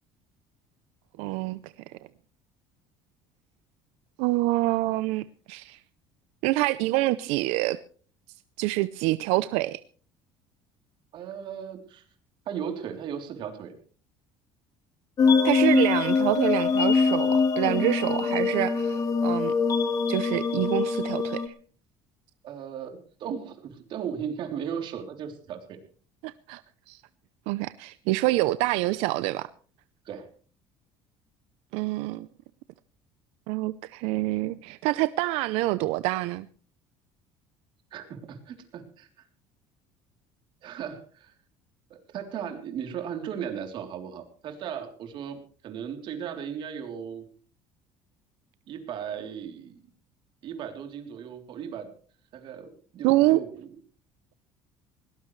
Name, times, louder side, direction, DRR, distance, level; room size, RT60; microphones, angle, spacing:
voice 1, 1.2-1.7 4.2-5.8 6.4-7.8 8.6-9.8 15.4-19.5 20.1-21.5 26.2-26.6 26.9-27.0 27.5-29.5 31.7-32.3 33.5-36.5 53.0-53.4, right 18 dB, 85° right, 15 dB, 0.6 m, -26 dB
voice 2, 11.1-12.0 12.4-13.7 22.4-25.8 30.0-30.3 37.9-39.1 40.6-41.3 41.9-47.2 48.7-49.8 50.4-51.9 52.3-53.7, right 8 dB, 50° right, 5 dB, 3.4 m, -36 dB
sound 1, 15.2-21.5, left 5 dB, 35° left, 1.9 m, -23 dB
20.5 x 18.5 x 3.2 m, 0.42 s
cardioid pair, 150°, 10 cm